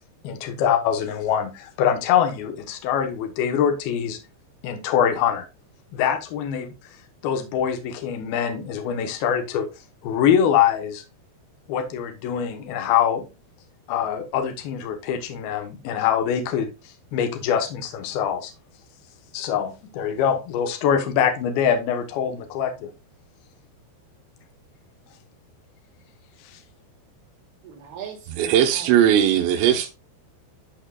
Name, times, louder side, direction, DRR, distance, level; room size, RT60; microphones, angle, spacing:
voice 1, 0.2-4.2 4.6-5.5 5.9-6.7 7.2-9.7 10.0-11.0 11.7-13.3 13.9-16.7 17.1-18.5 19.3-22.9 26.5-26.6, left 8 dB, 70° left, 2.7 m, -24 dB
voice 2, 27.6-28.9, right 9 dB, 65° right, 3.4 m, -39 dB
voice 3, 28.3-29.9, right 10 dB, 80° right, 3.3 m, -19 dB
13.5 x 4.5 x 2.3 m
omnidirectional pair, 5.1 m